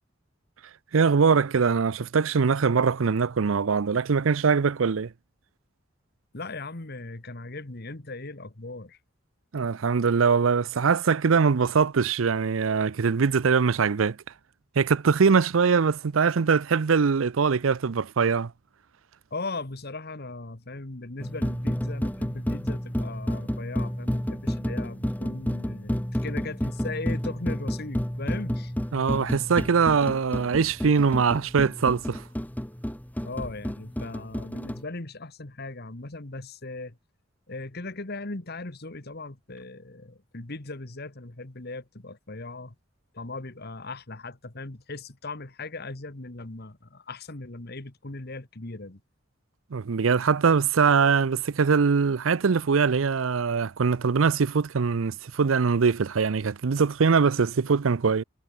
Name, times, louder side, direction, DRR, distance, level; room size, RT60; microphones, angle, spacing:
voice 1, 0.9-5.1 9.5-14.2 14.8-18.5 28.9-32.2 49.7-58.2, right 5 dB, 85° right, 0.6 m, -22 dB
voice 2, 6.3-9.0 19.3-28.7 33.2-37.0 37.5-42.7 43.1-49.0, left 2 dB, 55° left, 1.7 m, -38 dB
sound 1, 21.2-34.8, equal, 10° left, 1.2 m, -30 dB
head